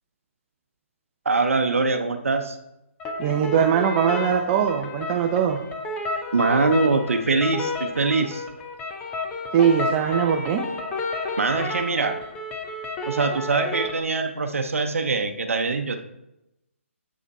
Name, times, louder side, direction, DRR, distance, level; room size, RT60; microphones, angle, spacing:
voice 1, 1.2-2.6 6.3-8.4 11.4-12.2 13.1-16.0, right 3 dB, 75° right, 6 dB, 0.7 m, -23 dB
sound 1, 3.0-14.0, left 2 dB, 15° left, 0.7 m, -31 dB
voice 2, 3.2-5.6 9.5-10.6, right 8 dB, 25° right, 2 dB, 0.6 m, -21 dB
8.1 x 5.0 x 4.1 m, 0.87 s
hypercardioid pair, 145°, 7 cm